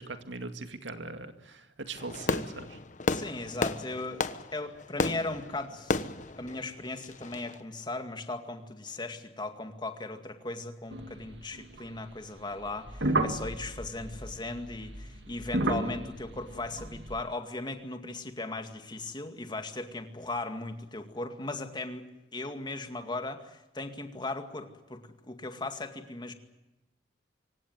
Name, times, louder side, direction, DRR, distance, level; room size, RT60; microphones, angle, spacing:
voice 1, 0.0-2.8, right 3 dB, 85° right, 8 dB, 2.2 m, -41 dB
Fireworks, 2.0-7.6, left 3 dB, 45° left, 1.1 m, -33 dB
voice 2, 3.1-4.3 4.5-6.1 6.4-26.3, left 2 dB, 25° left, 7 dB, 2.2 m, -37 dB
sound 1, 10.9-12.0 12.6-17.2, right 2 dB, 65° right, 2.4 m, -33 dB
26.0 x 16.5 x 9.4 m, 0.99 s
head